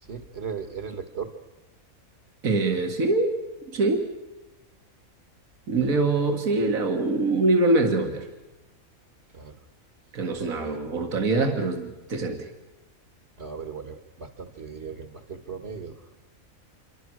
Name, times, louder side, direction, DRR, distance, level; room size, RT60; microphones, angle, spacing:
voice 1, 0.0-1.3 5.7-5.9 9.3-9.6 10.6-10.8 13.4-16.1, right 6 dB, 50° right, 7 dB, 1.8 m, -37 dB
voice 2, 2.4-3.3 3.7-4.0 5.7-8.3 10.1-12.5, right 2 dB, 75° right, 3 dB, 2.2 m, -24 dB
27.5 x 24.0 x 6.3 m, 1.1 s
omnidirectional pair, 1.5 m